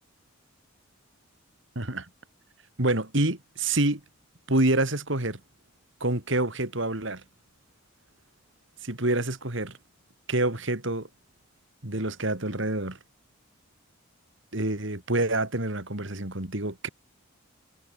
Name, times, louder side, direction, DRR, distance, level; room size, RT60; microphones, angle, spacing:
voice 1, 1.7-2.1 2.8-4.0 4.5-5.4 6.0-7.2 8.8-9.8 10.3-11.1 11.8-13.0 14.5-16.9, right 2 dB, 60° right, 2.9 m, -27 dB
head